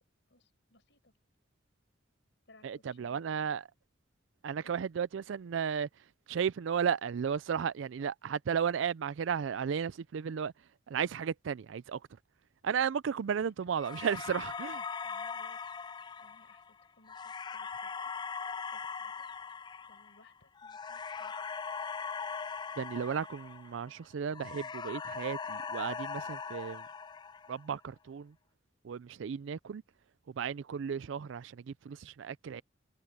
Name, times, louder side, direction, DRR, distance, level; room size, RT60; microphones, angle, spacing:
voice 1, 0.3-1.1 2.5-3.5 4.6-4.9 13.4-13.6 14.0-14.2 15.0-15.6 16.2-18.1 18.7-19.3 19.9-21.4, left 2 dB, 65° left, 7.4 m, -63 dB
voice 2, 2.6-3.6 4.4-5.9 6.3-10.5 10.9-12.0 12.6-14.8 22.8-26.8 27.5-28.3 28.8-29.8 30.3-32.6, right 7 dB, 80° right, 0.4 m, -34 dB
sound 1, 13.8-24.0 24.3-27.7, left 5 dB, 25° left, 0.3 m, -40 dB
head